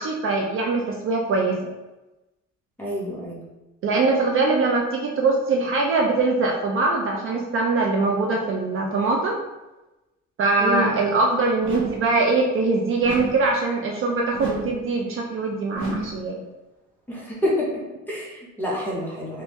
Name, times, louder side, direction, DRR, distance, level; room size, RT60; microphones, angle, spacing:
voice 1, 0.0-1.7 3.8-9.4 10.4-16.4, right 3 dB, 45° right, 0 dB, 0.4 m, -22 dB
voice 2, 2.8-3.4 10.6-10.9 17.1-19.4, left 1 dB, 5° left, -6 dB, 0.7 m, -28 dB
sound 1, 11.6-12.2 13.0-13.6 14.3-14.9 15.7-16.3, right 3 dB, 75° right, 1.0 m, -32 dB
3.4 x 2.6 x 3.0 m, 1.0 s
cardioid pair, 180°, 30 cm